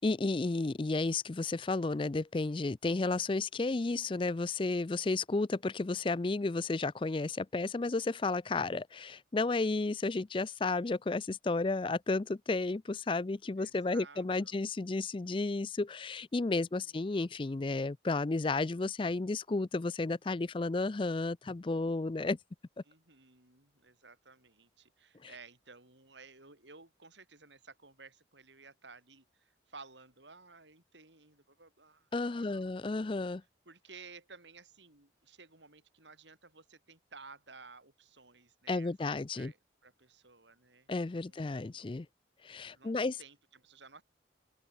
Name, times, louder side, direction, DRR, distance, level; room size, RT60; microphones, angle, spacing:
voice 1, 0.0-22.4 25.2-25.3 32.1-33.4 38.7-39.5 40.9-42.1 42.4-43.2, left 3 dB, 25° left, 0.4 m, -32 dB
voice 2, 13.6-14.6 16.5-17.1 22.9-32.7 33.7-41.9 42.7-44.0, right 4 dB, 75° right, 7.7 m, -56 dB
head